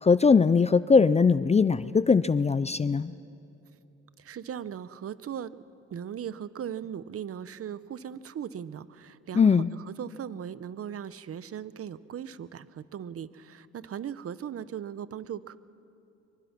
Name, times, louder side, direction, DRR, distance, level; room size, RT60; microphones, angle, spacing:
voice 1, 0.0-3.1 9.3-9.7, left 5 dB, 20° left, 16 dB, 0.5 m, -21 dB
voice 2, 4.2-5.6 5.9-15.6, right 9 dB, 50° right, 15 dB, 0.9 m, -38 dB
25.0 x 24.0 x 6.0 m, 2.9 s
cardioid pair, 90°, 30 cm